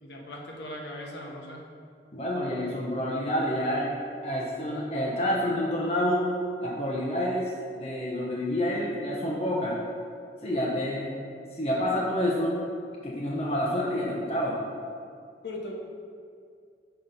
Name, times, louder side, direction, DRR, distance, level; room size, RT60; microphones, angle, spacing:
voice 1, 0.0-1.7 15.4-15.7, left 1 dB, 75° left, -1 dB, 1.0 m, -39 dB
voice 2, 2.1-3.9 4.2-6.3 6.6-9.8 10.4-11.2 11.5-12.6 13.0-14.6, left 1 dB, 35° left, -4 dB, 0.8 m, -28 dB
5.8 x 4.2 x 5.2 m, 2.3 s
head